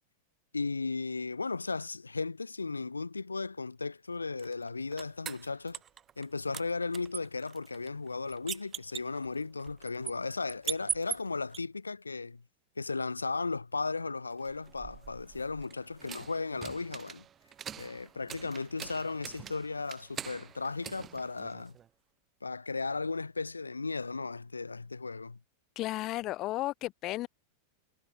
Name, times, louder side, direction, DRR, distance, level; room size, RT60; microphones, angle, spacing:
voice 1, 0.5-5.8 6.2-12.4 12.8-17.2 17.8-21.7 22.4-25.4, left 3 dB, 80° left, 0.8 m, -35 dB
sound 1, 4.4-6.3 6.5-11.6 14.4-21.9, right 9 dB, 25° right, 4.3 m, -43 dB
voice 2, 25.8-27.3, left 17 dB, 35° left, 0.3 m, -33 dB
figure-of-eight pair, 90°, 0 cm